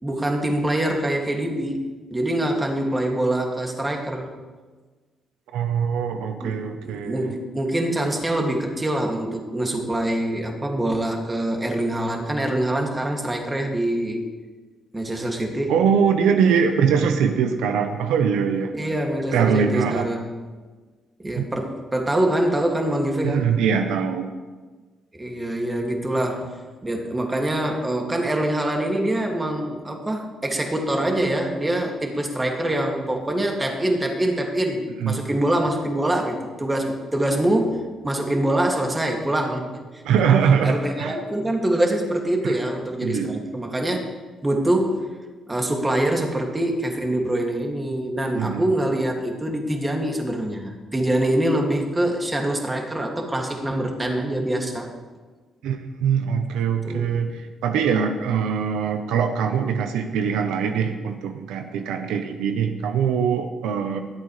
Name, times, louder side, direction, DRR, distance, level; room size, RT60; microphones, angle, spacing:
voice 1, 0.0-4.3 6.4-14.2 14.9-15.8 18.7-20.3 21.2-23.5 25.1-39.7 40.6-44.0 44.4-45.1 45.5-54.9 56.8-57.2, right 1 dB, 15° right, 1 dB, 2.2 m, -24 dB
voice 2, 5.5-7.3 15.7-18.7 19.3-20.1 21.4-21.5 23.2-24.3 35.0-35.2 40.0-41.2 42.4-42.6 43.0-43.4 48.3-48.6 55.6-64.0, right 7 dB, 90° right, 7 dB, 0.8 m, -22 dB
23.0 x 8.5 x 3.2 m, 1.4 s
cardioid pair, 90°, 0 cm